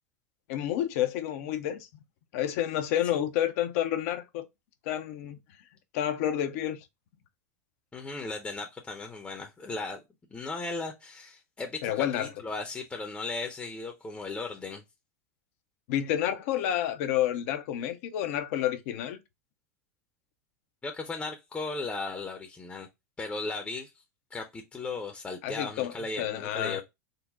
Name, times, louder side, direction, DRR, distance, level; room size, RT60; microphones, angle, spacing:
voice 1, 0.5-1.9 2.3-4.5 4.8-5.4 5.9-6.9 11.8-12.3 15.9-19.2 25.4-26.8, left 11 dB, 60° left, 0.7 m, -29 dB
voice 2, 7.9-10.0 10.3-14.8 20.8-22.9 23.2-23.9 24.3-26.8, left 3 dB, 15° left, 0.7 m, -36 dB
4.0 x 2.1 x 3.6 m
hypercardioid pair, 95°, 9 cm